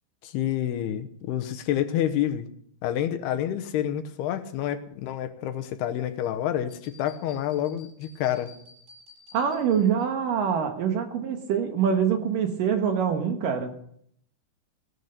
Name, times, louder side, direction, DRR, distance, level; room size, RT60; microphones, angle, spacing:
voice 1, 0.2-2.5 2.8-8.5, left 11 dB, 80° left, 8 dB, 2.9 m, -28 dB
sound 1, 6.7-10.0, left 4 dB, 80° right, 8.3 m, -53 dB
voice 2, 9.3-13.7, right 7 dB, 65° right, 5 dB, 2.7 m, -25 dB
17.5 x 11.0 x 6.7 m, 0.66 s
omnidirectional pair, 4.8 m